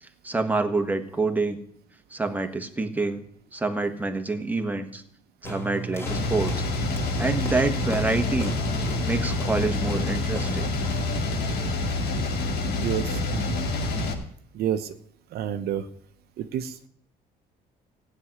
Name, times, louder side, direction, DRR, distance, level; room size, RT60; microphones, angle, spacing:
voice 1, 0.0-1.6 2.1-3.2 3.5-5.0 5.4-8.5 9.0-10.7, right 3 dB, 10° right, 6 dB, 1.4 m, -27 dB
sound 1, 5.4-11.2, right 3 dB, 15° left, 2.6 m, -35 dB
sound 2, 6.1-14.1, left 2 dB, 70° left, 2.4 m, -27 dB
voice 2, 12.8-13.6 14.5-14.9 15.3-15.9 16.4-16.9, right 9 dB, 70° right, 9 dB, 0.9 m, -29 dB
15.0 x 6.2 x 9.7 m, 0.67 s
cardioid pair, 110°, 17 cm